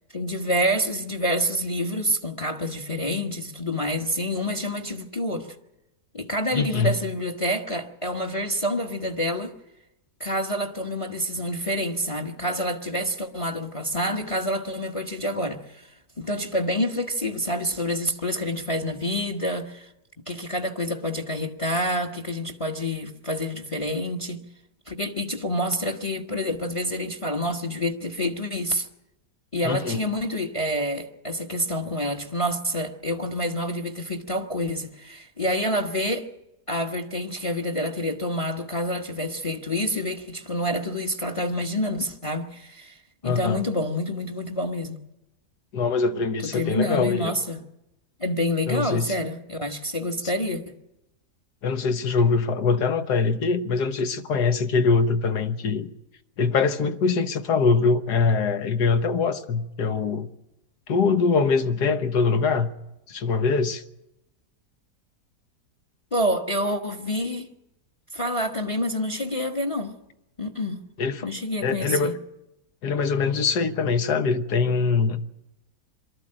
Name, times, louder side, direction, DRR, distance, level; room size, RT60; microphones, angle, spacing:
voice 1, 0.1-5.5 6.1-9.5 10.2-15.9 16.2-19.9 20.3-24.4 24.9-28.9 29.5-36.3 36.7-43.0 43.2-45.0 46.4-47.6 48.2-50.8 66.1-67.5 68.1-70.0 70.4-70.8 71.2-72.1, equal, 20° left, 1.1 m, -27 dB
voice 2, 6.5-7.0 29.6-30.0 43.2-43.6 45.7-47.3 48.7-49.1 51.6-55.9 56.4-60.3 60.9-62.7 63.1-63.8 71.0-71.3 71.6-72.2 72.8-75.2, left 4 dB, 80° left, 1.7 m, -23 dB
23.5 x 13.5 x 8.9 m
omnidirectional pair, 1.7 m